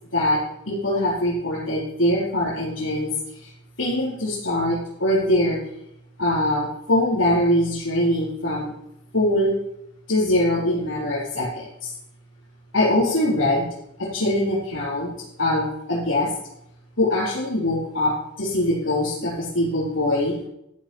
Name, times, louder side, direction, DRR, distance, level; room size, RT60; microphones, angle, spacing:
voice 1, 0.7-3.5 3.8-5.6 6.2-8.7 9.1-9.5 10.1-11.9 12.7-13.7 14.0-15.1 15.4-16.3 17.0-20.3, left 1 dB, 75° left, -8 dB, 4.3 m, -22 dB
13.5 x 5.2 x 6.3 m, 0.81 s
head